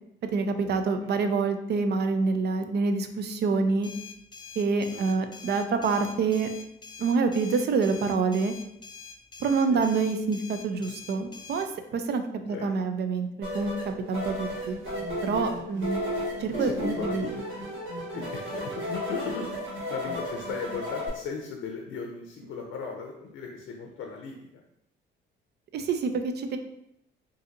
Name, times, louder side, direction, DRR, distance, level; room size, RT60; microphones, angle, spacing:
voice 1, 0.3-3.9 4.6-6.5 7.0-8.5 9.4-14.7 15.2-16.1 16.4-17.4 25.7-26.6, right 4 dB, 55° right, 8 dB, 0.4 m, -27 dB
sound 1, 3.8-11.7, left 5 dB, 25° left, 0.4 m, -45 dB
voice 2, 4.9-5.2 9.7-9.9 12.5-12.7 16.5-17.7 18.1-19.5 19.9-24.6, left 5 dB, 80° left, 2 dB, 0.5 m, -37 dB
sound 2, 13.4-21.1, equal, 80° right, 1.5 m, -33 dB
3.9 x 2.6 x 2.5 m, 0.81 s
cardioid pair, 90°, 20 cm